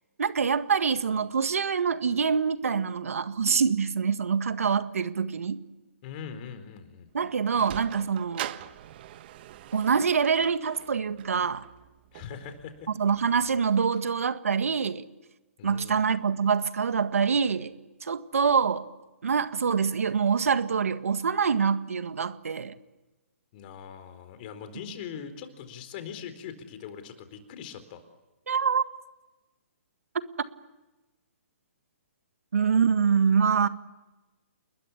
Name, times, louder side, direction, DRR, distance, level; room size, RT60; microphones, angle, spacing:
voice 1, 0.2-5.6 7.1-8.5 9.7-11.6 13.0-15.0 15.6-17.7 18.0-18.8 19.2-22.8 28.5-28.8 32.5-33.7, right 6 dB, 75° right, 1.8 m, -25 dB
voice 2, 6.0-7.1 12.1-12.9 15.6-16.1 23.5-28.0, left 7 dB, 40° left, 4.3 m, -41 dB
Sliding door, 7.1-13.7, right 13 dB, 45° right, 1.4 m, -43 dB
30.0 x 21.5 x 8.5 m
hypercardioid pair, 140°, 8 cm